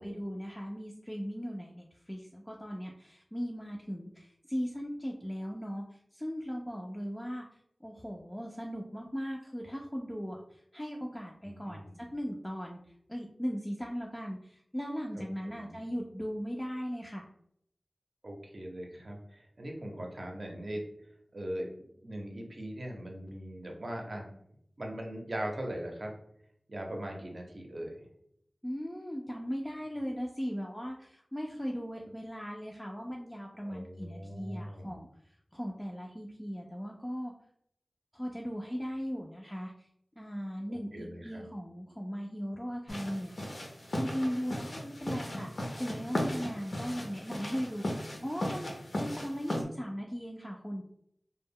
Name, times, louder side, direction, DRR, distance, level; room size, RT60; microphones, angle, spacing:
voice 1, 0.0-7.4 7.8-12.8 13.1-17.3 28.6-35.1 35.5-37.3 38.1-39.9 40.2-43.3 43.9-50.8, equal, 10° left, -1 dB, 0.3 m, -38 dB
voice 2, 11.4-12.0 15.2-15.8 18.2-20.8 21.3-21.7 22.0-24.3 24.8-26.1 26.7-28.0 33.6-35.0 40.7-41.4, right 1 dB, 60° right, 1 dB, 0.6 m, -40 dB
sound 1, 42.9-49.6, left 1 dB, 65° left, 0.6 m, -36 dB
2.1 x 2.0 x 3.5 m, 0.72 s
wide cardioid pair, 60°, 0 cm